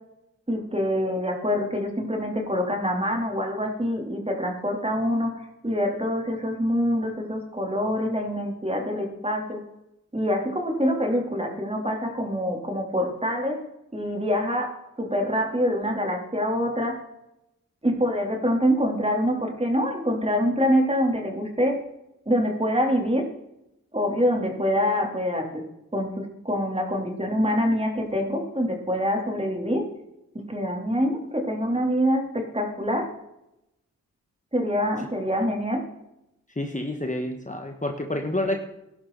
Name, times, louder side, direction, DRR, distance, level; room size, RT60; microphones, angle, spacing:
voice 1, 0.5-9.6 10.1-13.6 13.9-17.0 17.8-21.7 22.3-23.3 23.9-25.6 25.9-29.8 30.5-33.1 34.5-35.8, equal, 20° right, 1 dB, 4.1 m, -25 dB
voice 2, 36.6-38.6, left 1 dB, 25° left, 4 dB, 1.8 m, -28 dB
16.5 x 11.5 x 4.4 m, 0.86 s
cardioid pair, 50°, 32 cm